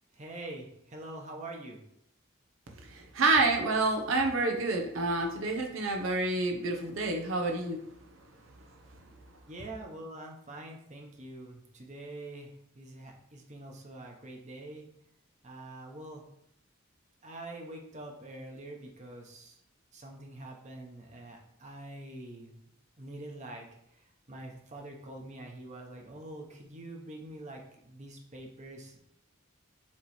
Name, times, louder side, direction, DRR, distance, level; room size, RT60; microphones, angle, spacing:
voice 1, 0.1-1.8 9.5-14.9 15.4-16.2 17.2-19.6 19.9-22.6 23.0-23.7 24.3-29.0, right 1 dB, 35° right, 1 dB, 1.0 m, -45 dB
voice 2, 2.9-7.8, right 3 dB, 80° right, 2 dB, 0.8 m, -28 dB
7.4 x 3.1 x 4.3 m, 0.75 s
head